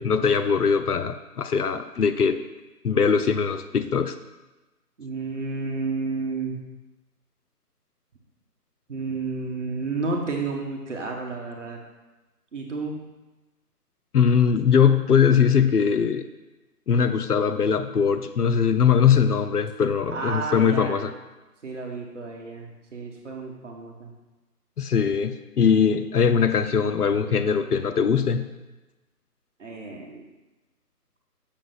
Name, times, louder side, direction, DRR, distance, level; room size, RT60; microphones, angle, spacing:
voice 1, 0.0-2.4 2.8-4.2 14.1-16.2 16.9-21.1 24.8-28.5, left 6 dB, 70° left, 9 dB, 0.7 m, -21 dB
voice 2, 5.0-6.6 8.9-11.8 12.5-13.0 20.1-21.1 21.6-24.1 29.6-30.3, right 3 dB, 50° right, 1 dB, 1.3 m, -31 dB
6.7 x 5.9 x 3.9 m, 1.1 s
figure-of-eight pair, 165°, 48 cm